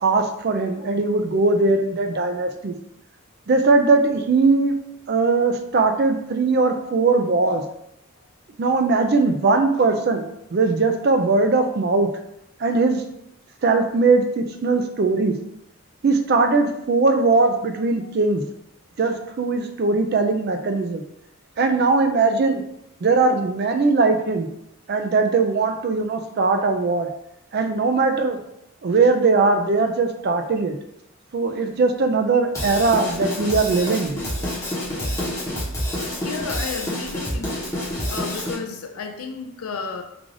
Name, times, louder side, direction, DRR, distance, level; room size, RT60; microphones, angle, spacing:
voice 1, 0.0-2.7 3.5-4.8 5.1-7.6 8.6-10.2 10.5-12.1 12.6-13.0 13.6-15.3 16.0-18.4 19.0-21.0 21.6-22.6 23.0-24.5 24.9-27.1 27.5-28.4 28.8-30.8 31.3-34.2, right 3 dB, 50° right, 6 dB, 0.4 m, -20 dB
Drum kit / Drum, 32.5-38.5, left 1 dB, 15° left, 0.8 m, -28 dB
voice 2, 36.2-37.7 38.1-40.0, left 5 dB, 85° left, 4 dB, 0.5 m, -32 dB
3.8 x 2.4 x 3.2 m, 0.80 s
head